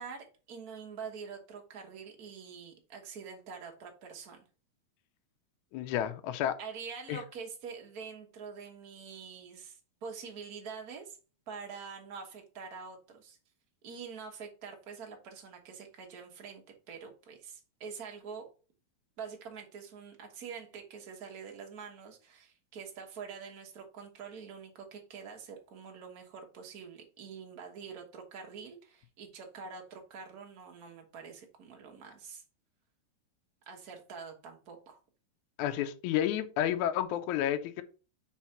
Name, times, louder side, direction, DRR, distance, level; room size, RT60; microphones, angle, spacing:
voice 1, 0.0-4.5 6.6-11.2 11.5-13.4 13.8-18.5 19.2-32.4 33.7-35.0, right 6 dB, 50° right, 1.2 m, -45 dB
voice 2, 5.7-6.6 7.1-7.2 35.6-37.8, left 11 dB, 80° left, 2.0 m, -31 dB
4.5 x 4.4 x 5.8 m
omnidirectional pair, 3.4 m